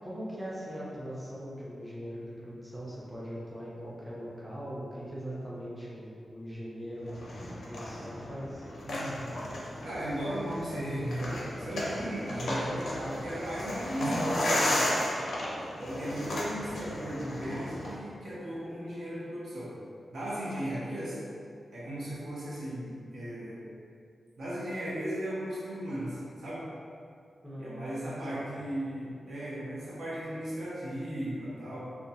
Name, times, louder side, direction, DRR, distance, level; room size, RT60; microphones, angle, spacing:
voice 1, 0.0-7.1 7.4-8.7 27.4-28.7, equal, 5° right, -8 dB, 0.5 m, -41 dB
sound 1, 7.1-17.9, left 1 dB, 85° left, 0.5 m, -34 dB
voice 2, 8.8-9.3 9.8-15.1 15.8-19.7 20.1-21.2 21.7-23.6 24.4-26.7 27.6-31.8, right 1 dB, 85° right, -8 dB, 0.7 m, -36 dB
2.5 x 2.2 x 2.6 m, 2.4 s
wide cardioid pair, 170°, 0 cm